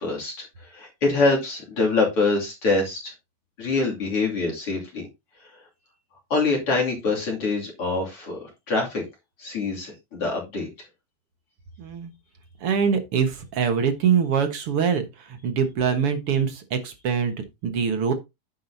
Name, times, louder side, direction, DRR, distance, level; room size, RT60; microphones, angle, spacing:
voice 1, 0.0-3.1 3.6-5.1 6.3-9.0 9.4-10.7, left 3 dB, 40° left, 3.2 m, -25 dB
voice 2, 11.8-12.1 12.6-18.1, right 7 dB, 55° right, 1.7 m, -24 dB
10.5 x 7.5 x 2.8 m
omnidirectional pair, 4.2 m